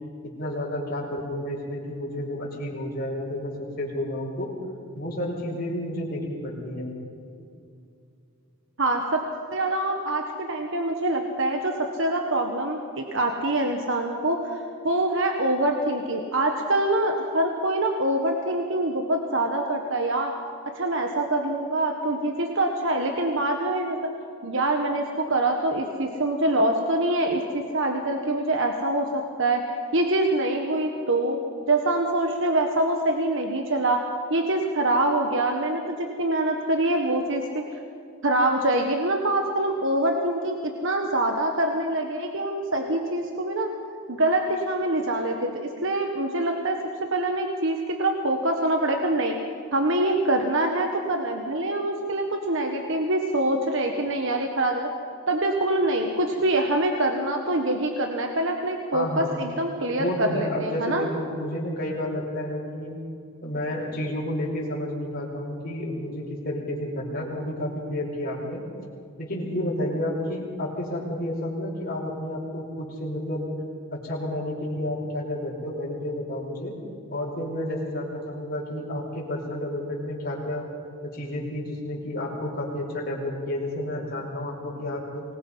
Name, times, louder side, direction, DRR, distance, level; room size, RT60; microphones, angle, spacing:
voice 1, 0.4-4.5 5.0-6.9 58.9-59.3 60.0-63.0 63.4-68.6 69.2-73.5 73.9-76.7 77.1-80.6 81.0-85.2, left 1 dB, 40° left, -3 dB, 5.0 m, -31 dB
voice 2, 8.8-9.2 9.5-20.3 20.6-24.1 24.4-29.6 29.9-31.4 31.7-34.0 34.3-37.6 38.2-40.6 40.8-43.7 44.1-46.8 47.1-49.4 49.7-54.9 55.3-61.1, right 1 dB, 55° right, 3 dB, 1.5 m, -25 dB
24.5 x 20.5 x 5.6 m, 2.5 s
head